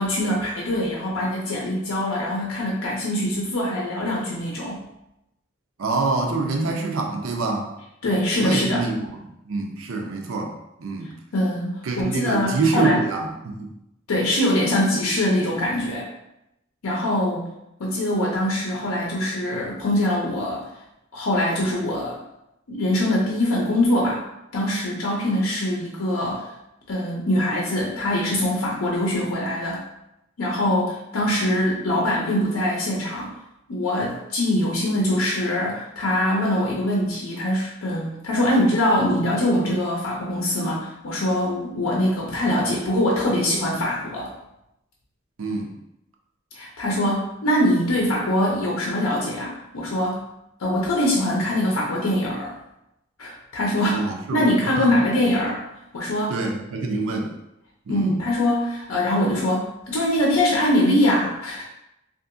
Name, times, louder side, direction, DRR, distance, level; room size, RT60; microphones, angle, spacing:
voice 1, 0.0-4.8 8.0-8.8 11.3-13.0 14.1-16.1 16.8-17.5 17.8-20.6 21.1-22.2 22.7-24.2 24.5-26.5 26.9-29.8 30.4-33.3 33.7-44.3 46.5-50.2 50.6-52.5 53.2-55.6 55.9-56.3 57.9-61.6, left 1 dB, 85° left, -3 dB, 0.6 m, -23 dB
voice 2, 5.8-7.7 8.3-9.2 9.5-10.5 10.8-11.1 11.8-13.7 45.4-45.7 53.9-54.9 56.3-57.3 57.9-58.2, right 3 dB, 75° right, 2 dB, 0.5 m, -26 dB
2.7 x 2.5 x 2.5 m, 0.87 s
head